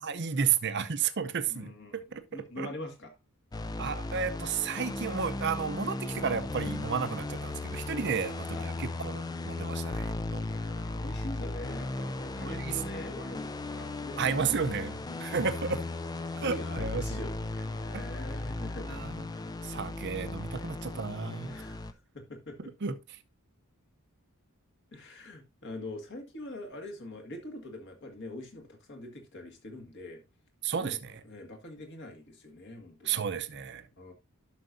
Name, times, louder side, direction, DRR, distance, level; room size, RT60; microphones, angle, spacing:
voice 1, 0.0-2.7 3.8-10.4 12.4-12.8 14.2-15.8 16.4-17.2 17.9-18.0 18.9-19.2 19.6-21.6 22.8-23.0 30.6-31.2 33.0-33.8, right 6 dB, 50° right, 0.7 m, -32 dB
voice 2, 1.5-3.1 8.0-8.2 8.5-8.7 9.5-9.8 10.5-14.6 15.0-15.3 15.6-15.7 16.3-19.5 20.5-20.8 21.5-21.8 22.1-22.6 24.9-30.2 30.8-31.0 31.2-33.2 34.0-34.1, left 1 dB, 55° left, 1.8 m, -44 dB
sound 1, 3.5-21.9, left 2 dB, 15° left, 0.4 m, -36 dB
11.5 x 6.0 x 2.6 m
head